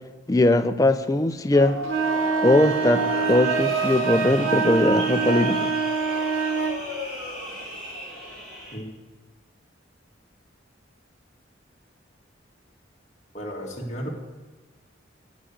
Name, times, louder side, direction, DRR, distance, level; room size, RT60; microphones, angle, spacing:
voice 1, 0.3-1.8 2.4-5.7, left 1 dB, 20° left, 9 dB, 0.4 m, -20 dB
sound 1, 1.5-8.7, equal, 50° right, 4.1 m, -33 dB
sound 2, 1.8-6.8, right 6 dB, 85° right, 0.8 m, -25 dB
voice 2, 13.3-14.1, equal, 35° left, -2 dB, 1.9 m, -33 dB
9.5 x 6.2 x 8.1 m, 1.3 s
head